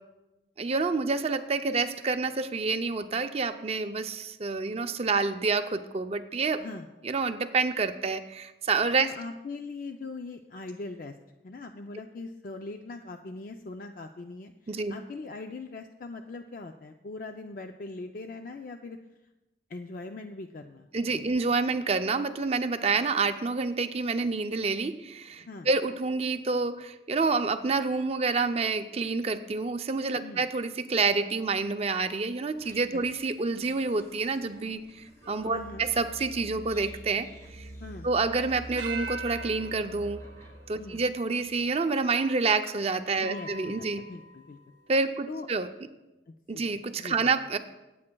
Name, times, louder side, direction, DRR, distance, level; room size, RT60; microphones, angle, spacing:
voice 1, 0.6-6.7 7.0-9.1 14.7-15.0 20.9-37.7 38.0-40.2 40.7-44.0 44.9-45.7 46.5-47.6, right 4 dB, 35° right, 8 dB, 0.5 m, -28 dB
voice 2, 9.0-11.1 11.4-19.0 19.7-20.9 21.1-21.3 25.5-25.7 30.2-30.4 32.9-33.0 35.5-35.9 37.8-38.1 40.8-41.0 43.2-44.6 45.3-45.5 46.3-46.6 47.0-47.3, left 3 dB, 50° left, 5 dB, 0.4 m, -41 dB
sound 1, 32.5-41.8, right 1 dB, 15° left, 2.0 m, -47 dB
sound 2, 35.2-38.2 38.8-41.5 42.2-42.3 43.2-44.8, right 3 dB, 80° right, 0.8 m, -43 dB
24.0 x 8.5 x 2.3 m, 1.0 s
head